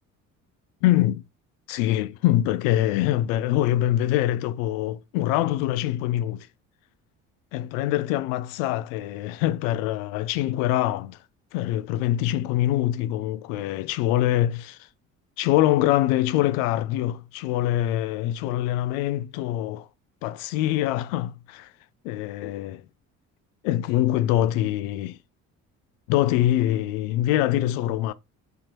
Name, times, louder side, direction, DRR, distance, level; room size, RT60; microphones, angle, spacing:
voice 1, 0.8-1.2 1.7-6.5 7.5-11.2 11.5-14.8 15.4-19.9 20.2-21.7 22.0-22.8 23.6-25.2 26.1-28.1, left 14 dB, 75° left, 0.5 m, -24 dB
3.4 x 2.8 x 4.4 m
hypercardioid pair, 55°, 40 cm